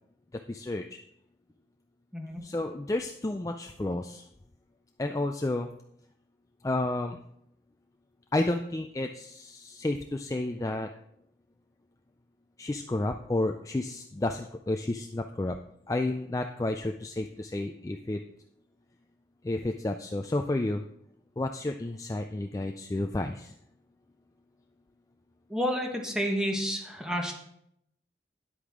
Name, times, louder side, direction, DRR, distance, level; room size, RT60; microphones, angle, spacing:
voice 1, 0.5-0.8 2.4-4.2 5.0-5.7 6.6-7.2 8.3-10.9 12.6-15.6 15.9-18.2 19.4-20.8 21.4-23.5, left 2 dB, 20° left, 5 dB, 0.3 m, -31 dB
voice 2, 25.5-27.3, equal, 5° right, 1 dB, 1.2 m, -30 dB
10.5 x 8.2 x 3.6 m, 0.74 s
head